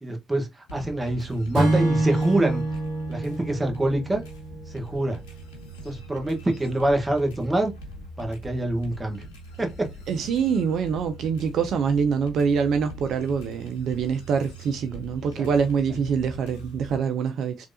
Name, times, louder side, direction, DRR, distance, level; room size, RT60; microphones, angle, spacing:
voice 1, 0.0-2.6 3.1-4.2 4.7-5.2 5.8-7.7 8.2-9.2 9.6-9.9 15.4-15.5, right 1 dB, 20° right, 1.2 m, -25 dB
sound 1, 0.7-17.0, right 1 dB, 80° left, 0.8 m, -42 dB
Acoustic guitar / Strum, 1.5-5.0, right 2 dB, 75° right, 0.9 m, -26 dB
voice 2, 10.1-17.7, right 6 dB, 60° right, 0.3 m, -25 dB
3.2 x 2.7 x 2.6 m
hypercardioid pair, 45°, 0 cm